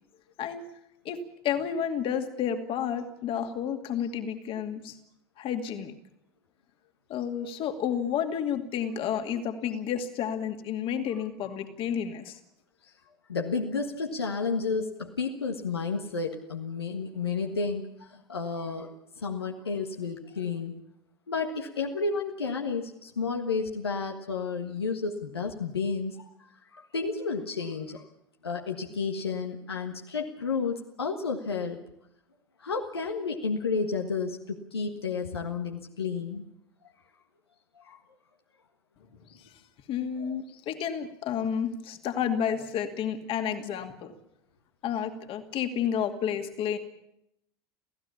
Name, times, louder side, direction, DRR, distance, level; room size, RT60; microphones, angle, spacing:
voice 1, 1.0-5.0 5.4-5.9 7.1-12.4 39.3-39.4 39.9-44.1 44.8-46.8, left 8 dB, 45° left, 6 dB, 2.4 m, -31 dB
voice 2, 13.3-18.9 19.2-20.7 21.3-26.3 26.7-28.0 28.4-31.8 32.6-36.4 37.8-38.0 40.2-40.4, left 4 dB, 80° left, 2 dB, 1.6 m, -31 dB
29.0 x 16.0 x 7.2 m, 0.82 s
figure-of-eight pair, 75°, 13 cm